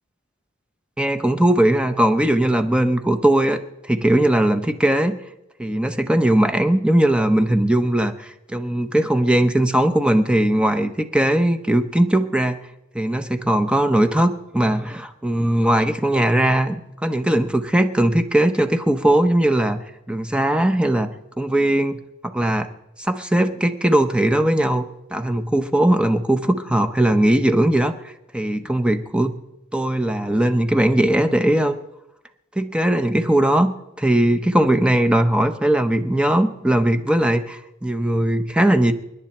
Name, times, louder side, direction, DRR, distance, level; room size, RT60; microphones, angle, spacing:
voice 1, 1.0-5.2 5.6-12.6 12.9-19.8 20.1-21.1 21.4-22.0 22.2-22.7 23.0-24.8 25.1-29.4 29.7-31.8 32.6-33.7 34.0-38.9, right 1 dB, 5° right, 8 dB, 0.8 m, -19 dB
29.5 x 10.0 x 4.4 m, 0.92 s
head